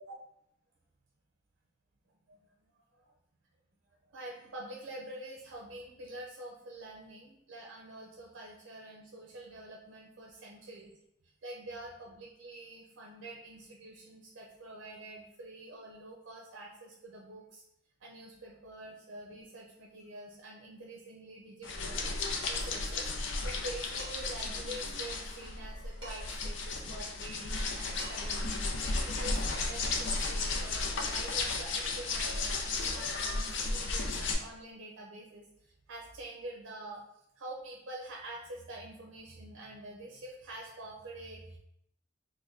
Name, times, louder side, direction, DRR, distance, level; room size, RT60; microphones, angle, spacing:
voice 1, 4.1-10.9 11.4-17.6 18.0-37.0 37.4-41.6, right 1 dB, 85° right, -1 dB, 0.5 m, -46 dB
sound 1, 21.6-34.3, left 3 dB, 70° left, 0.5 m, -34 dB
Dishes pots and pans, 24.0-24.4 26.0-26.5 27.6-27.7 28.0-28.4, right 2 dB, 30° right, 1.3 m, -49 dB
3.3 x 2.2 x 3.6 m, 0.76 s
head